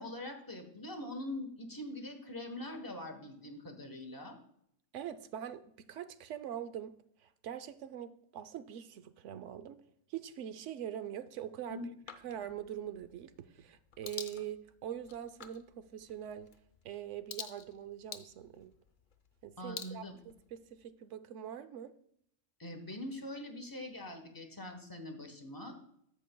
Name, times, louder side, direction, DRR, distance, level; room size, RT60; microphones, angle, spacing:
voice 1, 0.0-4.4 11.7-11.9 19.6-20.1 22.6-25.8, left 1 dB, 15° left, 0.9 m, -43 dB
voice 2, 4.9-6.9 7.2-9.8 10.1-11.8 12.2-16.5 16.8-18.8 19.4-21.9, right 10 dB, 70° right, 0.9 m, -43 dB
sound 1, 12.0-20.9, left 7 dB, 50° left, 0.6 m, -50 dB
16.0 x 5.3 x 2.2 m
omnidirectional pair, 1.4 m